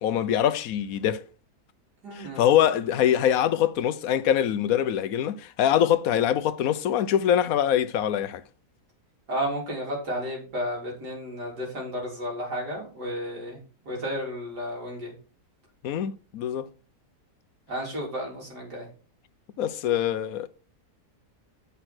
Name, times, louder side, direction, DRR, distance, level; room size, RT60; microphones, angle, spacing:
voice 1, 0.0-1.2 2.1-8.4 15.8-16.7 19.6-20.5, left 10 dB, 65° left, 1.0 m, -24 dB
voice 2, 2.0-2.5 9.3-13.6 13.9-15.1 17.7-18.9, equal, 90° right, 4.3 m, -32 dB
8.4 x 5.7 x 6.1 m
omnidirectional pair, 1.7 m